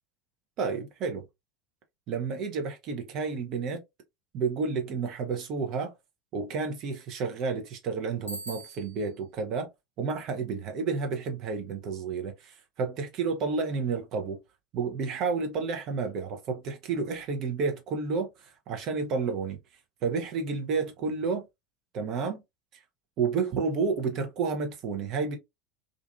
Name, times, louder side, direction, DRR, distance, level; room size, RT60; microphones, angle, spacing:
voice 1, 0.6-1.2 2.1-3.8 4.3-5.9 6.3-9.7 10.0-14.4 14.7-18.3 18.7-19.6 20.0-21.4 21.9-22.4 23.2-25.4, right 5 dB, 45° right, 0.8 m, -30 dB
Bicycle bell, 8.3-9.2, right 1 dB, 80° right, 0.6 m, -41 dB
2.6 x 2.5 x 2.3 m
figure-of-eight pair, 75°, 0 cm